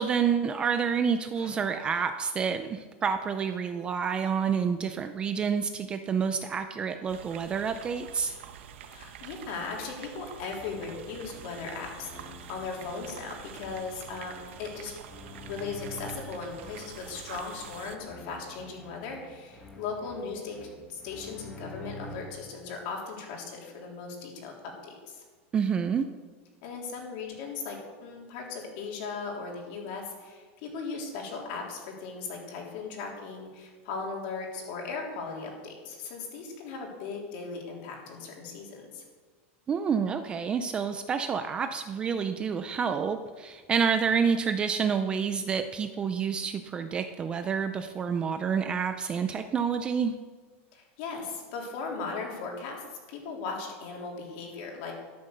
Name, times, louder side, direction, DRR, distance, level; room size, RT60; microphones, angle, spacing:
voice 1, 0.0-8.3 25.5-26.1 39.7-50.2, right 6 dB, 15° right, 8 dB, 0.4 m, -28 dB
sound 1, 7.1-18.0, right 9 dB, 65° right, 1.3 m, -47 dB
voice 2, 8.8-14.9 15.4-20.6 20.9-25.2 26.6-39.0 50.7-52.8 53.1-54.9, left 4 dB, 45° left, 0 dB, 3.6 m, -38 dB
sound 2, 10.5-22.5, left 1 dB, 10° left, 1.6 m, -47 dB
13.0 x 11.0 x 6.6 m, 1.4 s
supercardioid pair, 180°, 7 cm